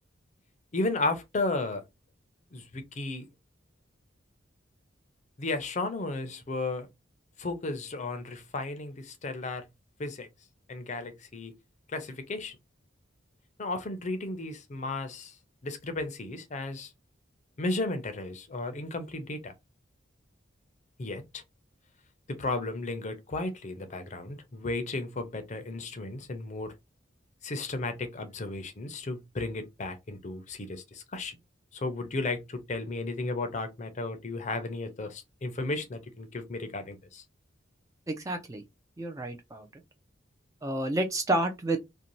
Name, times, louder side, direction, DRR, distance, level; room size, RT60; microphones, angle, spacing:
voice 1, 0.7-1.8 2.5-3.2 5.4-6.9 7.4-9.6 10.0-10.3 10.7-11.5 11.9-12.6 13.6-15.3 15.6-16.9 17.6-19.5 21.0-21.4 22.3-26.7 27.4-31.4 31.7-37.2, left 2 dB, 40° left, 0.5 m, -34 dB
voice 2, 38.1-38.6 39.0-39.7 40.6-41.8, right 1 dB, 15° right, 0.4 m, -30 dB
2.6 x 2.1 x 2.9 m
head